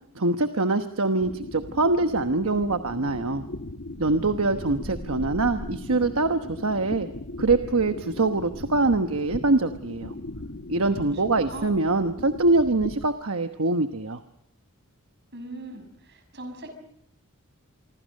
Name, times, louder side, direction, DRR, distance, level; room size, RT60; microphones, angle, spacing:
voice 1, 0.1-3.5 4.0-7.1 7.4-10.1 10.7-14.2, right 2 dB, 70° right, 8 dB, 1.1 m, -24 dB
sound 1, 1.2-13.1, left 2 dB, 60° left, 1.3 m, -38 dB
voice 2, 10.9-11.7 15.3-16.8, right 2 dB, 50° right, 7 dB, 6.2 m, -41 dB
27.0 x 24.0 x 6.5 m, 0.74 s
head